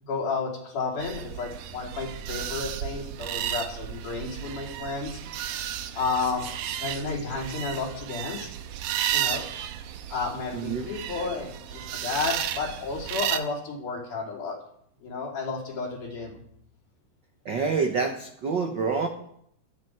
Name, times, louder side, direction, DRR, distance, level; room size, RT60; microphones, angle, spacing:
voice 1, 0.0-5.2 5.9-8.5 9.1-9.5 10.1-14.6 15.0-16.4, left 4 dB, 70° left, -1 dB, 4.4 m, -32 dB
sound 1, 1.0-13.4, right 10 dB, 90° right, 2.4 m, -33 dB
voice 2, 10.5-10.9 17.4-19.1, right 5 dB, 65° right, 4 dB, 1.1 m, -27 dB
14.5 x 12.5 x 4.7 m, 0.69 s
omnidirectional pair, 3.7 m